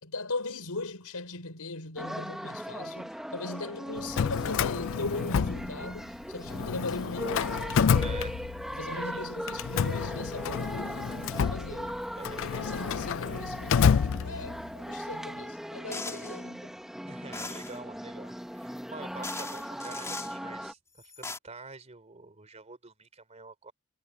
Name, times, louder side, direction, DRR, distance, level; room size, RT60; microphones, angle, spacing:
voice 1, 0.0-8.1 8.7-11.0 11.3-12.0 12.6-16.8, left 3 dB, 80° left, 4.6 m, -39 dB
sound 1, 2.0-20.7, equal, ahead, 1.4 m, -39 dB
Drawer open or close, 4.0-6.2 6.5-8.9 9.5-14.7, left 7 dB, 60° left, 0.4 m, -29 dB
voice 2, 8.0-8.4 8.8-9.3 12.2-12.7 13.0-13.4 16.1-16.2 17.1-23.7, right 3 dB, 30° right, 3.4 m, -47 dB
sound 2, 15.9-16.4 17.3-17.8 18.8-18.9 19.2-20.4 21.0-21.4, left 3 dB, 15° left, 3.0 m, -39 dB
head